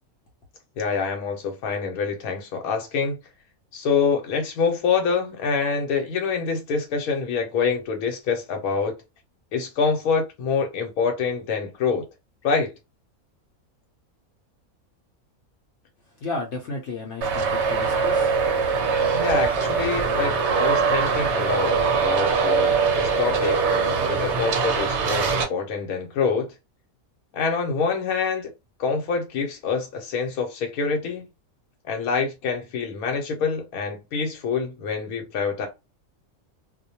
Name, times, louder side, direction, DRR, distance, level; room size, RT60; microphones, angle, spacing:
voice 1, 0.8-3.2 3.7-8.9 9.5-12.1 12.4-12.7 19.1-26.5 27.3-28.5 28.8-31.2 31.9-35.7, left 5 dB, 85° left, 1.1 m, -26 dB
voice 2, 16.2-18.4, left 3 dB, 65° left, 0.8 m, -33 dB
Traffic noise roadway noise, 17.2-25.4, right 5 dB, 60° right, 0.8 m, -22 dB
2.4 x 2.1 x 2.7 m
omnidirectional pair, 1.5 m